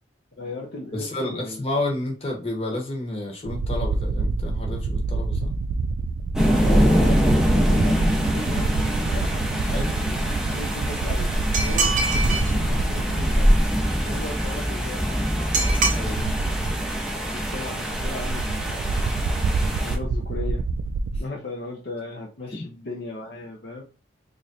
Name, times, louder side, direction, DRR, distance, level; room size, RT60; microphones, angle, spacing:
voice 1, 0.4-1.6 6.6-9.4 10.0-15.0 17.2-19.2 19.8-20.6 21.2-23.8, left 2 dB, 55° left, -1 dB, 0.6 m, -37 dB
voice 2, 0.9-5.5 9.6-10.0 15.9-16.3, left 1 dB, 30° left, 0 dB, 1.0 m, -30 dB
sound 1, 3.5-14.1 14.4-14.5 15.6-21.2, right 3 dB, 80° right, 0.3 m, -27 dB
sound 2, 6.3-20.0, equal, 5° right, 0.5 m, -23 dB
sound 3, 11.5-12.5 15.5-16.0, right 4 dB, 45° right, 0.7 m, -24 dB
3.1 x 2.5 x 4.0 m, 0.32 s
head